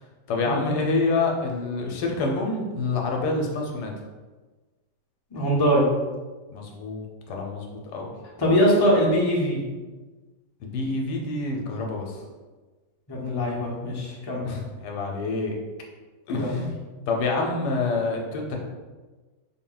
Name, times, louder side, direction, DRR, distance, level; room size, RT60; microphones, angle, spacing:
voice 1, 0.3-3.9 6.5-8.1 10.6-12.2 14.4-15.6 16.3-16.7 17.1-18.6, left 3 dB, 75° left, 1 dB, 1.1 m, -27 dB
voice 2, 5.3-5.9 8.4-9.6 13.1-14.4 16.4-16.6, equal, 35° left, -5 dB, 0.4 m, -22 dB
3.9 x 2.2 x 3.8 m, 1.3 s
omnidirectional pair, 1.9 m